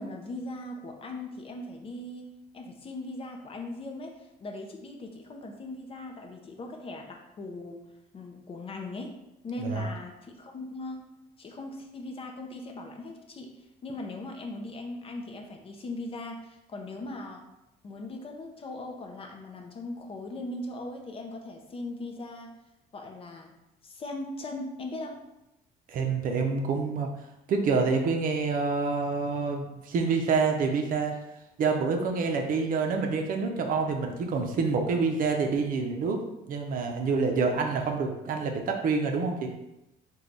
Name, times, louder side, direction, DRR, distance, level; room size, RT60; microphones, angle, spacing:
voice 1, 0.0-7.8 8.1-9.2 9.4-11.1 11.4-13.5 13.8-17.4 17.8-22.5 22.9-23.5 23.8-25.2, left 2 dB, 35° left, 3 dB, 0.5 m, -39 dB
voice 2, 25.9-27.1 27.5-31.1 31.6-36.2 36.5-39.5, right 4 dB, 55° right, 3 dB, 0.5 m, -27 dB
3.1 x 2.3 x 3.9 m, 0.92 s
cardioid pair, 110°, 17 cm